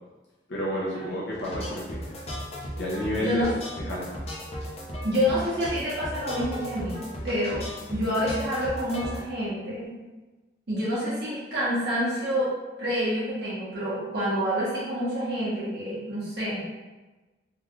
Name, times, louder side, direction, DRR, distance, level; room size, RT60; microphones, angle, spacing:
voice 1, 0.5-2.0 2.8-3.5 3.8-4.1, left 1 dB, 90° left, -6 dB, 0.7 m, -30 dB
sound 1, 1.3-9.2, equal, 35° left, 0.6 m, -36 dB
voice 2, 3.2-3.5 5.0-7.0 7.2-7.6 7.9-10.0 10.7-12.5 12.8-16.6, equal, 70° right, -9 dB, 1.5 m, -28 dB
3.6 x 2.4 x 3.0 m, 1.2 s
head